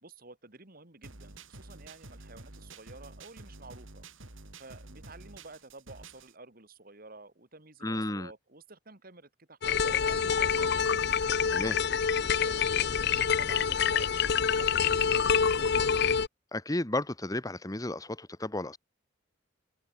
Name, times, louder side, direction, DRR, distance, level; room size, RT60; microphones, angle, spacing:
voice 1, 0.0-4.0 4.6-10.9 11.3-15.8, right 3 dB, 45° right, 2.7 m, -51 dB
sound 1, 1.0-6.3, right 2 dB, 75° right, 3.6 m, -49 dB
voice 2, 7.8-8.3 11.5-11.8 16.5-18.8, left 1 dB, 15° left, 1.2 m, -33 dB
sound 2, 9.6-16.3, left 7 dB, 55° left, 0.6 m, -26 dB
open air
head